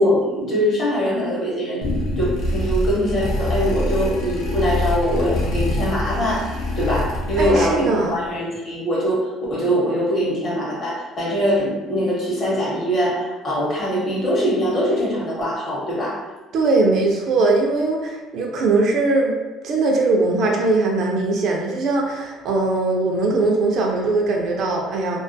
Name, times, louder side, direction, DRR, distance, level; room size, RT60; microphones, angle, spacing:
voice 1, 0.0-6.5 6.8-16.2, equal, 35° left, -6 dB, 0.8 m, -22 dB
sound 1, 1.8-7.9, left 1 dB, 65° left, 0.6 m, -25 dB
voice 2, 7.4-8.1 16.5-19.4 19.6-25.2, right 3 dB, 50° right, 0 dB, 0.4 m, -20 dB
2.2 x 2.2 x 2.6 m, 1.2 s
cardioid pair, 150°, 0 cm